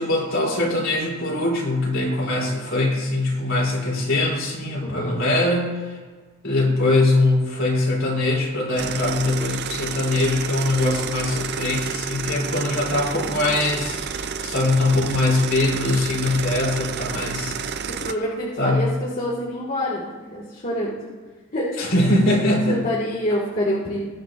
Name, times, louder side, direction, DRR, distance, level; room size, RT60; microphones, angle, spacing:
voice 1, 0.0-6.0 6.4-17.6 18.6-18.8 21.8-22.8, left 2 dB, 60° left, -3 dB, 3.5 m, -22 dB
voice 2, 4.8-5.2 17.9-21.0 21.5-21.7 22.7-24.0, left 1 dB, 40° left, -6 dB, 2.0 m, -26 dB
sound 1, 8.8-18.1, right 6 dB, 50° right, 0.5 m, -30 dB
20.5 x 8.7 x 2.6 m, 1.5 s
head